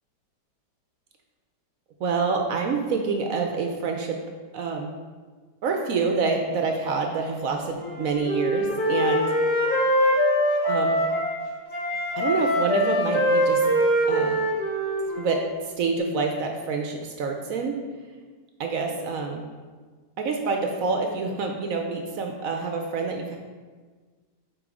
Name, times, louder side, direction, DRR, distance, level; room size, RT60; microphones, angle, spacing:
voice 1, 2.0-4.2 4.5-4.9 5.6-9.3 10.6-11.0 12.2-13.7 14.1-14.4 15.2-15.4 15.8-17.8 18.6-19.4 20.2-23.4, right 4 dB, 65° right, 3 dB, 0.9 m, -27 dB
Wind instrument woodwind instrument, 7.8-11.4 11.7-15.5, equal, 70° left, 2.0 m, -23 dB
7.8 x 3.1 x 4.8 m, 1.5 s
omnidirectional pair, 1.8 m